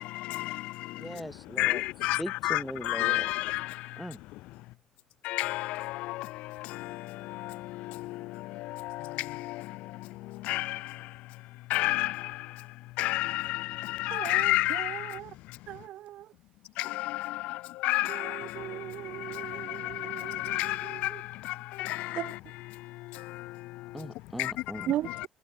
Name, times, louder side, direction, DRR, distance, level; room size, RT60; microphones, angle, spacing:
voice 1, 0.9-1.8 2.2-3.3 4.0-4.2 23.9-24.9, equal, ahead, 6.5 m, -39 dB
voice 2, 1.6-3.6 5.2-5.7 10.5-10.7 11.7-12.1 13.0-13.6 14.0-14.9 17.8-18.3 20.4-20.8 21.8-22.0 24.4-24.5, left 19 dB, 85° left, 3.4 m, -28 dB
voice 3, 14.1-15.3 15.7-16.3 18.1-21.2 22.2-22.3 24.9-25.3, right 13 dB, 70° right, 5.5 m, -38 dB
supercardioid pair, 85°, 2 cm